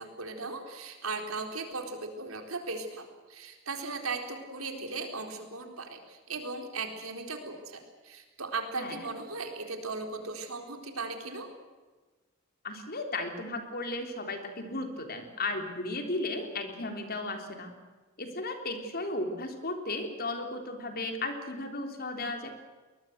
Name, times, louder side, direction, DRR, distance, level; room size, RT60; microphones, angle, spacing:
voice 1, 0.0-11.5, right 3 dB, 85° right, 5 dB, 4.1 m, -37 dB
voice 2, 12.6-17.7 18.2-22.5, left 2 dB, 45° left, 5 dB, 3.6 m, -35 dB
23.0 x 20.0 x 8.0 m, 1.3 s
head